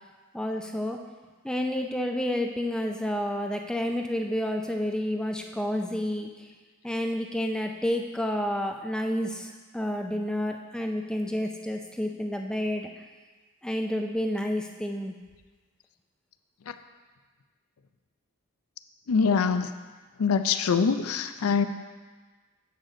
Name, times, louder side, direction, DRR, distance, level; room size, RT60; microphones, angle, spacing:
voice 1, 0.3-1.0 1.4-6.5 6.8-12.9 13.6-15.1, equal, 5° left, 3 dB, 0.4 m, -30 dB
voice 2, 19.1-19.7 20.2-21.7, left 5 dB, 85° left, 9 dB, 0.5 m, -24 dB
8.1 x 6.4 x 3.8 m, 1.4 s
head